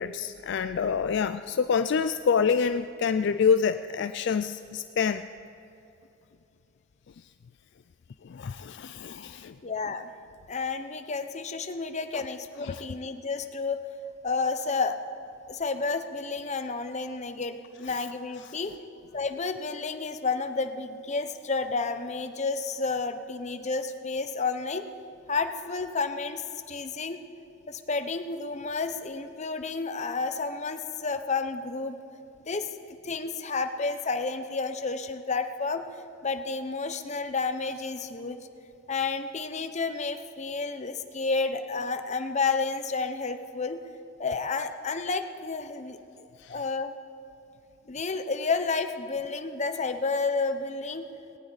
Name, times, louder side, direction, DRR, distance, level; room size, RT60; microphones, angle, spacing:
voice 1, 0.0-5.2 8.3-9.5 12.6-12.8, left 6 dB, 60° left, 10 dB, 0.4 m, -26 dB
voice 2, 9.6-10.1 10.5-13.8 14.2-15.0 15.5-18.7 19.1-24.9 25.3-27.2 27.7-32.0 32.5-32.7 33.0-35.8 36.2-38.4 38.9-43.8 44.2-46.0 46.5-46.9 47.9-51.1, left 4 dB, 35° left, 8 dB, 0.8 m, -31 dB
18.5 x 18.5 x 4.0 m, 2.8 s
head